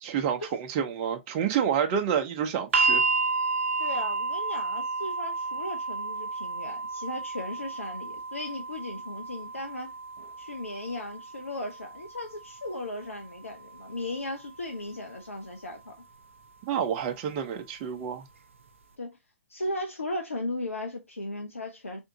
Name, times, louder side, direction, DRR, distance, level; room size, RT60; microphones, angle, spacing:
voice 1, 0.0-3.0 16.7-18.2, right 8 dB, 35° right, 0.6 m, -28 dB
sound 1, 2.7-14.8 15.9-16.0, right 3 dB, 70° right, 0.6 m, -32 dB
voice 2, 3.8-10.0 10.4-15.9 19.0-19.2 19.5-22.0, left 1 dB, 90° left, 0.6 m, -36 dB
3.5 x 2.6 x 2.7 m
figure-of-eight pair, 120°, 7 cm